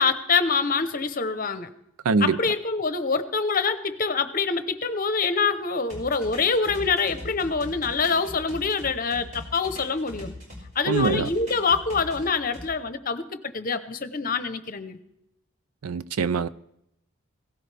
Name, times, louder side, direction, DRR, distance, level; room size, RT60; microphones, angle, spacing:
voice 1, 0.0-1.7 2.2-10.3 10.7-15.0, left 5 dB, 40° left, 0.8 m, -25 dB
voice 2, 2.1-2.4 10.9-11.3 15.8-16.5, right 4 dB, 85° right, 0.5 m, -23 dB
sound 1, 5.9-10.6 10.9-12.7, left 1 dB, 35° right, 5.1 m, -40 dB
17.0 x 16.5 x 3.4 m
head